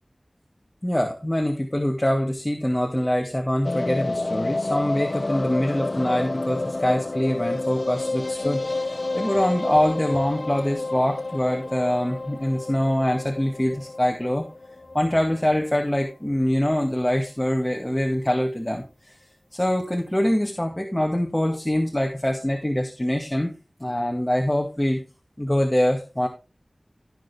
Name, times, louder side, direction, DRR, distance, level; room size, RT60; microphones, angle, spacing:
voice 1, 0.8-14.4 14.9-19.2 19.5-23.5 23.8-25.0 25.4-26.3, left 1 dB, 15° left, 2 dB, 2.0 m, -24 dB
sound 1, 3.6-15.8 16.1-16.2 16.4-16.5 16.8-16.9, left 2 dB, 60° left, 0.7 m, -29 dB
16.0 x 6.5 x 3.5 m, 0.30 s
wide cardioid pair, 55°, 0 cm